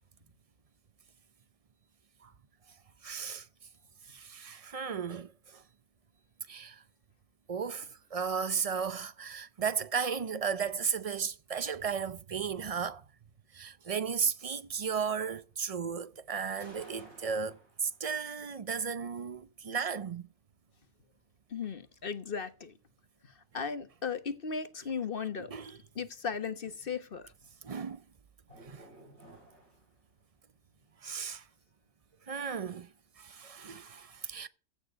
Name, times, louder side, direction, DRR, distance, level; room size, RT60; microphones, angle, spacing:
voice 1, 3.0-3.5 4.1-5.6 6.5-6.8 7.5-13.0 13.5-20.2 25.4-25.7 27.6-28.0 28.6-28.9 31.0-31.4 32.3-32.9 33.2-34.5, right 6 dB, 40° right, 0.5 m, -35 dB
sound 1, 14.6-15.7 16.0-18.2 18.7-18.8 19.2-19.4 19.7-19.8 20.2-20.3 20.7-20.8 21.2-22.4 22.8-22.9 23.3-23.4 23.9-24.0 24.2-24.5 24.9-25.0 25.3-25.7 25.9-26.0 26.4-26.5 27.0-27.1 27.4-27.7 28.0-28.1 28.5-30.3 30.6-31.3 31.6-31.8 32.1-32.3 32.6-32.8, right 1 dB, 75° right, 8.4 m, -57 dB
voice 2, 21.5-22.7 23.2-25.5 25.9-27.3, left 6 dB, 45° left, 1.2 m, -36 dB
15.5 x 6.8 x 6.3 m
omnidirectional pair, 1.5 m